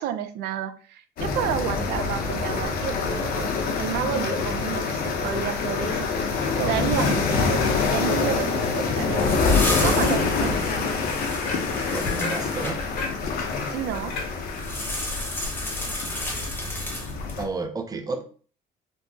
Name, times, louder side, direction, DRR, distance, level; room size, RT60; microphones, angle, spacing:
voice 1, 0.0-10.5 13.7-14.1, right 10 dB, 80° right, 10 dB, 0.4 m, -31 dB
sound 1, 1.2-17.4, left 4 dB, 60° left, 0.6 m, -26 dB
sound 2, 5.4-14.7, left 3 dB, 85° left, 1.1 m, -36 dB
sound 3, 8.8-12.8 14.5-17.4, left 1 dB, 10° left, 0.8 m, -33 dB
voice 2, 11.9-12.8 17.4-18.2, right 3 dB, 20° right, 6 dB, 0.5 m, -31 dB
3.4 x 2.0 x 2.6 m, 0.42 s
cardioid pair, 110°, 17 cm